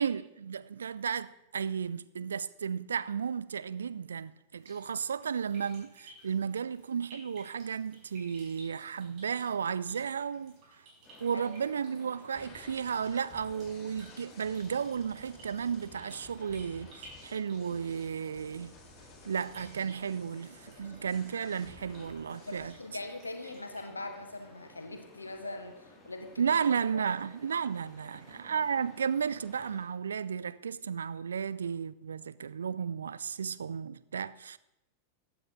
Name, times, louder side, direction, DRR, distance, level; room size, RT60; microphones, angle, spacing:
voice 1, 0.0-10.6 11.2-18.7 19.2-22.7 26.4-34.6, right 7 dB, 70° right, 0.4 m, -33 dB
sound 1, 4.6-23.8, right 2 dB, 40° right, 5.1 m, -58 dB
sound 2, 11.0-29.8, left 2 dB, 15° left, 4.7 m, -57 dB
voice 2, 11.3-11.7 22.2-26.6 26.9-27.0, left 2 dB, 80° left, 1.4 m, -42 dB
sound 3, 12.3-22.7, left 3 dB, 35° left, 3.9 m, -55 dB
15.0 x 9.5 x 3.8 m
figure-of-eight pair, 90°, 0 cm